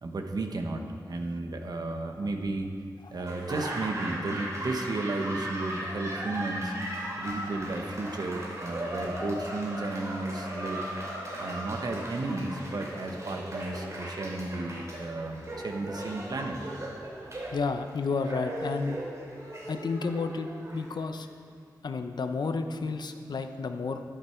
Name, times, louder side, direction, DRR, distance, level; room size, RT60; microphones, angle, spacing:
voice 1, 0.0-2.7 3.1-6.7 7.2-10.8 11.4-16.6, right 2 dB, 60° right, 4 dB, 1.1 m, -33 dB
Laughter / Applause, 3.2-21.3, right 1 dB, 45° right, 2.9 m, -37 dB
voice 2, 17.5-19.0 19.7-21.3 21.8-24.0, left 4 dB, 70° left, 7 dB, 0.7 m, -31 dB
12.0 x 10.5 x 4.5 m, 2.1 s
wide cardioid pair, 100°, 8 cm